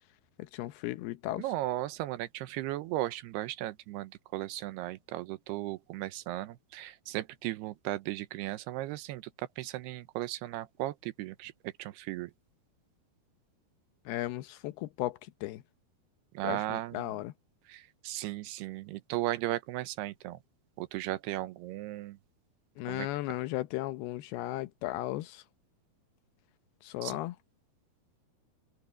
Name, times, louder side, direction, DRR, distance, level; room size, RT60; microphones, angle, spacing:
voice 1, 0.4-1.5 14.1-15.6 16.4-17.3 22.8-25.4 26.8-27.4, left 16 dB, 80° left, 2.7 m, -36 dB
voice 2, 1.4-9.2 9.6-11.5 11.8-12.3 16.3-17.1 17.7-20.4 20.8-22.2 22.9-23.1 27.0-27.1, right 16 dB, 80° right, 2.8 m, -36 dB
open air
omnidirectional pair, 4.7 m